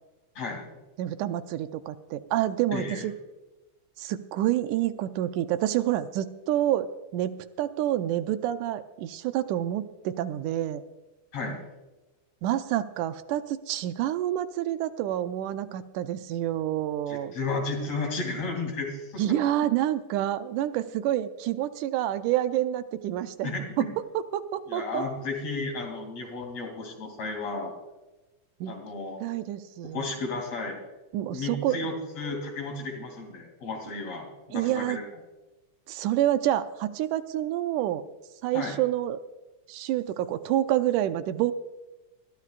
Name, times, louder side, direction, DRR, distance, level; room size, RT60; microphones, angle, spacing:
voice 1, 1.0-3.1 4.0-6.9 7.1-10.8 12.4-17.3 19.2-23.9 24.1-25.0 28.6-28.7 29.2-30.1 31.1-31.8 34.5-35.0 35.9-38.0 38.4-39.2 39.7-41.5, right 12 dB, 80° right, 10 dB, 2.0 m, -28 dB
voice 2, 2.7-3.1 11.3-11.6 17.1-19.4 23.4-23.9 24.7-27.8 28.7-29.2 29.8-30.8 31.3-35.0 38.5-38.8, left 3 dB, 55° left, 2 dB, 3.9 m, -33 dB
21.5 x 14.5 x 2.5 m, 1.1 s
omnidirectional pair, 3.6 m